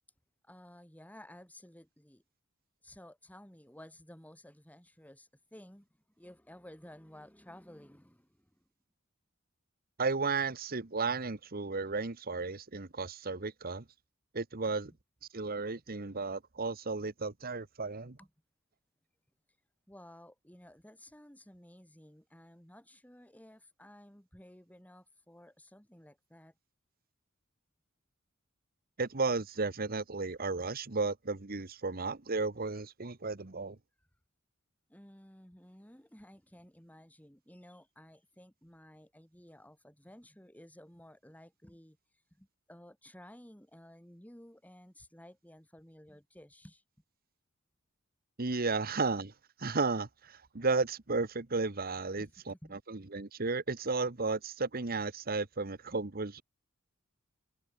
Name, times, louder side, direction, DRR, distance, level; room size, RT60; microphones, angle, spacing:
voice 1, 0.4-2.2 2.8-5.9 6.2-8.6 14.6-14.7 18.2-18.3 19.9-26.5 34.9-46.8 52.2-52.8, left 1 dB, 10° left, 3.3 m, -55 dB
voice 2, 10.0-13.8 14.3-14.9 15.3-18.2 29.0-33.8 48.4-49.3 49.6-56.4, right 4 dB, 45° right, 1.3 m, -34 dB
head